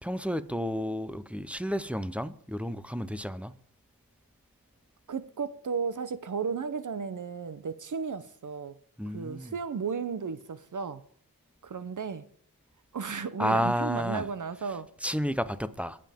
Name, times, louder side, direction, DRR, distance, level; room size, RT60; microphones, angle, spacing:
voice 1, 0.0-3.5 9.0-9.5 13.4-14.3 15.0-16.0, equal, 5° right, 0.6 m, -31 dB
voice 2, 5.1-8.7 9.1-11.0 11.6-12.3 12.9-14.9, right 5 dB, 55° right, 0.7 m, -34 dB
19.5 x 7.6 x 3.6 m
wide cardioid pair, 100°, 38 cm